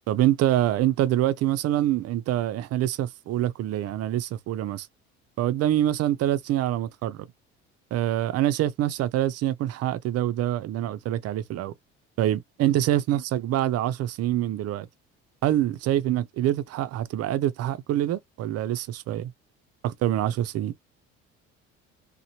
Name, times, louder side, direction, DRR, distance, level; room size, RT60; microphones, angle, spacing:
voice 1, 0.1-4.9 5.4-7.3 7.9-11.7 12.2-14.9 15.4-19.3 19.8-20.7, right 13 dB, 50° right, 0.5 m, -25 dB
2.8 x 2.1 x 2.8 m
supercardioid pair, 70°, 32 cm